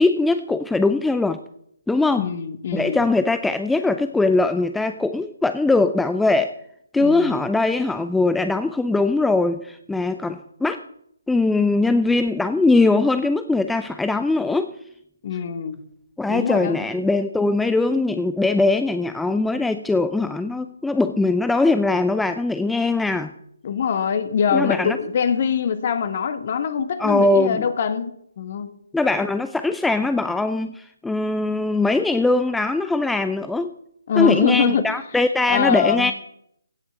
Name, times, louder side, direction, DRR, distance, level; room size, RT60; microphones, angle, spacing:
voice 1, 0.0-1.4 1.9-2.3 2.7-6.6 6.9-10.8 11.3-14.7 16.2-23.3 24.5-25.0 27.0-27.7 28.9-33.7 34.2-36.1, left 3 dB, 5° left, 10 dB, 0.4 m, -21 dB
voice 2, 2.2-3.0 7.0-7.4 15.2-15.8 16.3-16.9 23.6-28.7 34.1-34.8 35.5-36.1, left 7 dB, 40° left, 11 dB, 1.3 m, -23 dB
16.5 x 6.1 x 8.1 m, 0.72 s
figure-of-eight pair, 145°, 0 cm